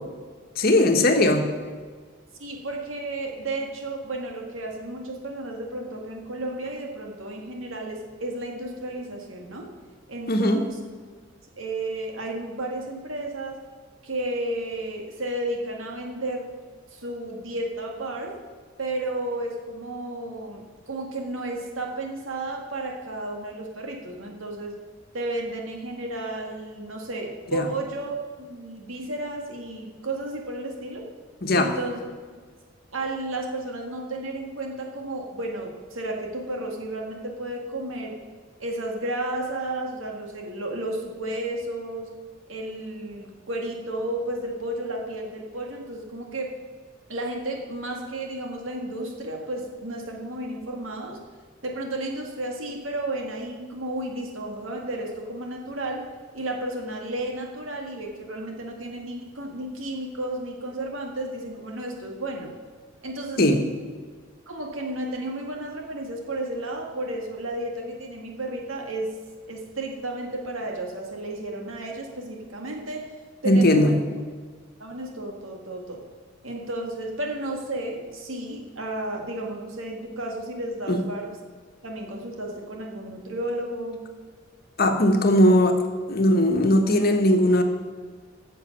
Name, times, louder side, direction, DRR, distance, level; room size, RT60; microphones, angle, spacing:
voice 1, 0.6-1.4 10.3-10.6 27.5-27.7 31.4-31.7 63.4-63.6 73.4-73.9 80.9-81.0 84.8-85.8 86.1-87.6, left 1 dB, 50° left, 5 dB, 1.2 m, -19 dB
voice 2, 2.4-9.7 10.1-10.8 11.6-13.6 14.0-16.5 16.9-18.4 18.8-24.8 25.1-31.1 31.5-32.0 32.9-38.2 38.6-42.1 42.5-46.5 47.1-51.2 51.6-56.1 56.3-62.5 63.0-63.4 64.5-69.1 69.5-73.0 73.4-74.0 74.8-76.0 76.4-81.3 81.8-84.0, right 1 dB, 85° right, 1 dB, 2.0 m, -32 dB
10.5 x 6.7 x 7.9 m, 1.5 s
head